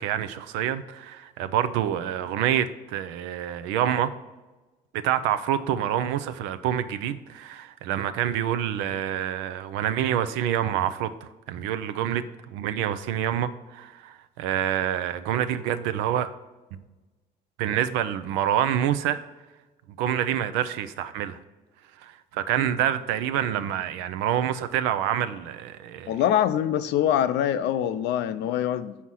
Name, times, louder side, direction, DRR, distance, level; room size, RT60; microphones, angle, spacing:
voice 1, 0.0-4.1 4.9-16.3 17.6-19.2 20.0-21.4 22.0-26.2, right 10 dB, 80° right, 12 dB, 0.5 m, -27 dB
voice 2, 26.1-29.0, left 10 dB, 70° left, 13 dB, 0.5 m, -24 dB
5.8 x 4.1 x 6.1 m, 1.2 s
supercardioid pair, 65°, 19 cm